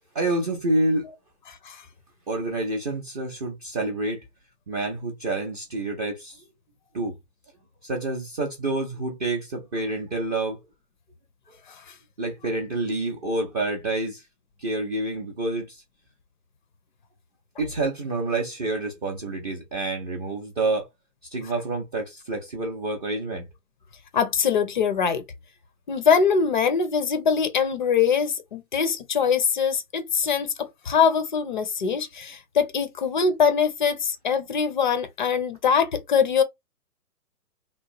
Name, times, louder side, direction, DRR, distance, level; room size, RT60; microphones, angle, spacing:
voice 1, 0.1-1.1 2.3-4.2 4.7-6.4 6.9-7.2 7.8-10.6 12.2-14.2 14.6-15.8 17.6-20.9 21.3-23.5, right 2 dB, 25° right, 0.5 m, -28 dB
voice 2, 1.5-1.8 11.7-11.8 24.1-25.2 25.9-36.4, left 6 dB, 35° left, 0.4 m, -23 dB
2.9 x 2.1 x 2.6 m
hypercardioid pair, 135°, 46 cm